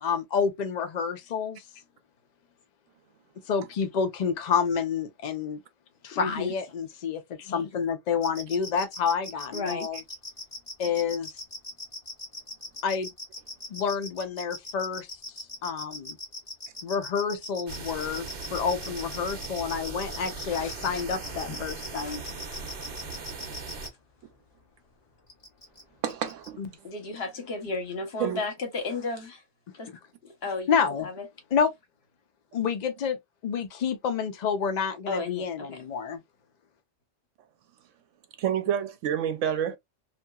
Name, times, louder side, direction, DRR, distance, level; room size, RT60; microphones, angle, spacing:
voice 1, 0.0-1.6 3.5-5.6 6.0-10.0 10.8-11.3 12.8-13.1 13.7-15.1 15.6-16.2 16.8-22.2 26.6-26.7 30.7-31.1 31.5-31.7 32.5-36.2, left 6 dB, 80° left, 0.3 m, -29 dB
voice 2, 6.1-6.5 9.5-9.9 20.5-22.7 26.8-29.4 29.7-29.9 30.2-30.7 31.0-31.3 35.1-35.8, left 3 dB, 55° left, 1.1 m, -34 dB
sound 1, 8.2-23.9 25.3-25.8 26.1-26.5, left 2 dB, 30° left, 0.8 m, -39 dB
sound 2, 17.7-23.9, right 4 dB, 50° right, 0.8 m, -39 dB
voice 3, 26.0-26.6 28.2-28.4 38.4-39.8, right 9 dB, 75° right, 0.9 m, -28 dB
2.8 x 2.4 x 2.2 m
omnidirectional pair, 1.3 m